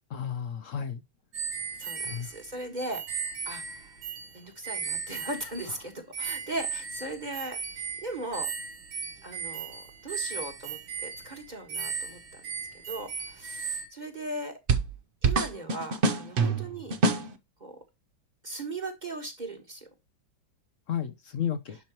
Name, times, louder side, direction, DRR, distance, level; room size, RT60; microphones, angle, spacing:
voice 1, 0.1-1.0 2.0-2.3 20.9-21.8, left 8 dB, 70° left, 0.7 m, -32 dB
sound 1, 1.3-5.9 6.1-13.9, right 6 dB, 85° right, 2.2 m, -37 dB
voice 2, 1.8-3.9 4.3-8.5 9.2-12.4 12.9-14.6 15.2-16.9 17.6-17.8 18.4-19.9, right 2 dB, 25° right, 1.4 m, -38 dB
sound 2, 14.7-14.9 15.2-17.3, right 4 dB, 65° right, 0.5 m, -25 dB
11.0 x 4.5 x 2.9 m
omnidirectional pair, 2.1 m